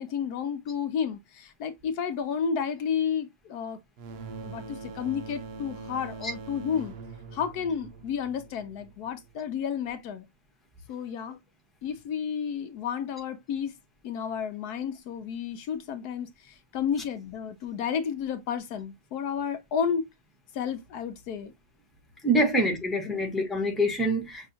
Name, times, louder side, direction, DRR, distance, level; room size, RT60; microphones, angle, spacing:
voice 1, 0.0-3.8 4.4-6.9 7.3-10.2 10.9-11.4 11.8-13.7 14.0-20.1 20.5-21.5 22.4-22.5 23.1-23.2, left 7 dB, 75° left, 1.1 m, -31 dB
sound 1, 4.0-9.4, right 4 dB, 70° right, 0.6 m, -42 dB
voice 2, 22.2-24.5, right 1 dB, ahead, 1.0 m, -25 dB
6.0 x 2.8 x 2.7 m
omnidirectional pair, 1.7 m